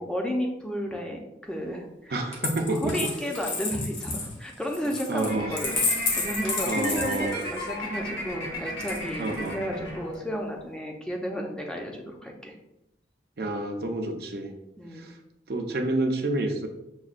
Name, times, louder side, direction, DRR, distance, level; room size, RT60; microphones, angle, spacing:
voice 1, 0.0-2.2 2.7-12.5 14.8-15.1, equal, 5° left, 0 dB, 0.5 m, -33 dB
voice 2, 2.1-3.1 5.1-5.6 6.7-7.4 9.2-9.6 13.4-14.5 14.9-15.2 15.5-16.7, right 2 dB, 55° right, 4 dB, 0.5 m, -29 dB
Coin (dropping), 2.3-7.7 8.8-9.5, left 4 dB, 90° left, 0.9 m, -31 dB
sound 1, 5.3-10.5, equal, 70° left, 1.1 m, -34 dB
6.1 x 2.2 x 2.4 m, 0.88 s
head